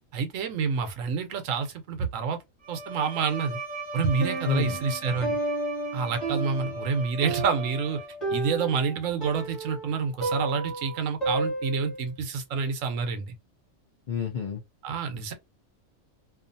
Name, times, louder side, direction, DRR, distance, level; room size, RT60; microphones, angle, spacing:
voice 1, 0.1-2.4 2.7-3.6 3.9-5.4 5.9-8.0 8.3-13.3 14.8-15.3, right 5 dB, 75° right, 1.0 m, -28 dB
Bowed string instrument, 2.6-8.4, right 1 dB, 40° right, 0.9 m, -38 dB
Piano, 4.2-12.1, right 3 dB, ahead, 1.2 m, -33 dB
voice 2, 4.5-4.8 14.1-14.6, left 6 dB, 60° left, 0.5 m, -29 dB
2.5 x 2.3 x 2.6 m
omnidirectional pair, 1.4 m